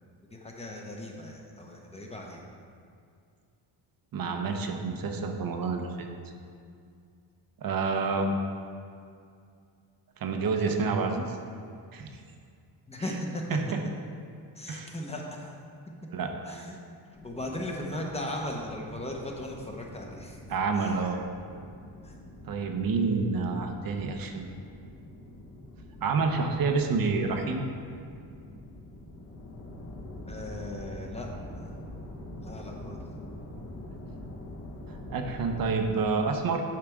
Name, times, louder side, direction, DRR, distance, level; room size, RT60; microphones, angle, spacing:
voice 1, 0.3-2.4 12.9-13.6 14.5-15.5 16.5-16.8 17.2-20.4 20.8-21.0 22.0-22.1 30.3-31.3 31.5-31.7 32.4-33.0, left 1 dB, 15° left, 0 dB, 1.0 m, -37 dB
voice 2, 4.1-6.1 7.6-8.4 10.2-11.4 11.9-12.1 13.5-13.6 14.7-14.9 16.1-16.7 20.5-21.2 22.4-24.5 26.0-27.6 34.9-36.6, right 4 dB, 55° right, 4 dB, 0.8 m, -28 dB
sound 1, 17.1-35.9, left 1 dB, 35° left, 1.2 m, -45 dB
8.7 x 5.7 x 3.6 m, 2.3 s
cardioid pair, 115°, 43 cm